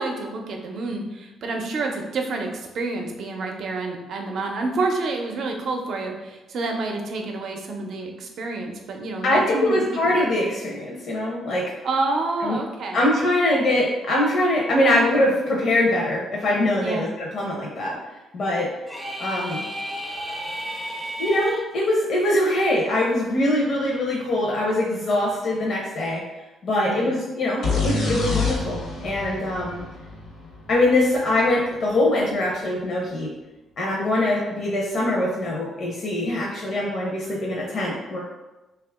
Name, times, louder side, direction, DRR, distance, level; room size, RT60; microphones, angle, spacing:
voice 1, 0.0-10.1 11.8-13.1 16.8-17.1 26.8-27.2, right 3 dB, 65° right, 2 dB, 0.5 m, -28 dB
voice 2, 9.2-11.6 12.4-12.6 12.9-18.0 18.3-18.7 19.2-19.6 21.2-26.2 26.6-29.8 30.7-33.3 33.8-38.2, left 1 dB, 55° left, -4 dB, 0.6 m, -23 dB
sound 1, 18.9-21.6, equal, ahead, 0.4 m, -32 dB
sound 2, 27.6-31.3, left 3 dB, 80° left, 0.9 m, -27 dB
2.9 x 2.3 x 3.4 m, 1.1 s
cardioid pair, 90°, 0 cm